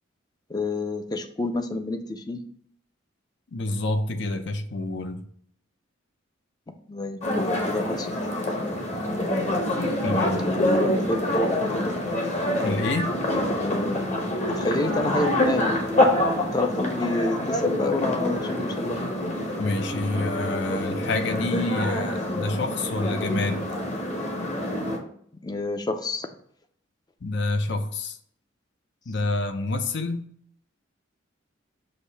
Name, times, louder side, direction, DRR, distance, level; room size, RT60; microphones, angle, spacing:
voice 1, 0.5-2.4 6.7-8.1 10.6-12.0 13.3-14.0 14.5-15.8 16.5-19.0 25.4-26.3, left 2 dB, 20° left, 8 dB, 0.5 m, -28 dB
voice 2, 3.5-5.3 10.0-10.4 12.6-13.1 19.6-23.7 27.2-28.2 29.1-30.3, left 2 dB, 65° left, 8 dB, 0.6 m, -28 dB
sound 1, 7.2-25.0, left 1 dB, 35° left, 1.0 m, -26 dB
6.5 x 2.7 x 5.5 m, 0.64 s
head